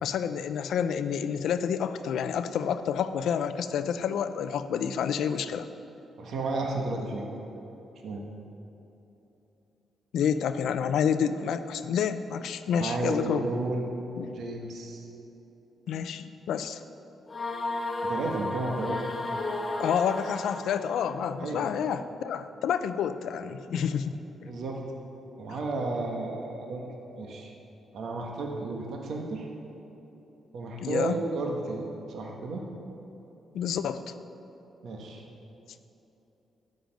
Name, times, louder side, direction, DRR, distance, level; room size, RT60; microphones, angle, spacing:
voice 1, 0.0-5.7 10.1-13.5 14.2-14.3 15.9-16.8 19.8-24.1 30.8-31.2 33.5-34.0, left 8 dB, 75° left, 11 dB, 0.6 m, -29 dB
voice 2, 6.2-7.2 8.0-8.2 12.8-13.9 14.3-15.0 18.0-19.0 21.4-21.6 24.4-24.8 25.4-26.8 27.2-27.5 27.9-29.5 30.5-32.7 34.8-35.2, right 3 dB, 60° right, 0 dB, 1.6 m, -32 dB
sound 1, 17.3-21.1, left 2 dB, 20° left, 1.2 m, -33 dB
14.0 x 6.8 x 9.2 m, 3.0 s
wide cardioid pair, 170°, 0 cm